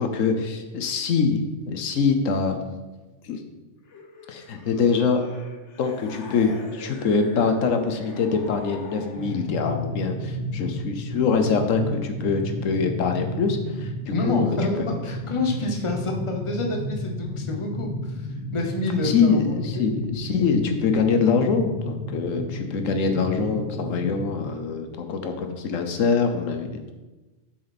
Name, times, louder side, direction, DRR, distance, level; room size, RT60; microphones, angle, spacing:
voice 1, 0.0-2.6 3.2-3.4 4.3-5.2 5.8-14.6 19.0-26.9, left 5 dB, 85° left, 6 dB, 1.2 m, -24 dB
sound 1, 3.8-9.7, left 2 dB, 65° left, 1.3 m, -44 dB
sound 2, 9.2-24.6, left 1 dB, 25° right, 0.7 m, -32 dB
voice 2, 14.1-19.9, left 2 dB, 25° left, 2 dB, 1.0 m, -28 dB
7.0 x 6.3 x 4.2 m, 1.2 s
omnidirectional pair, 1.3 m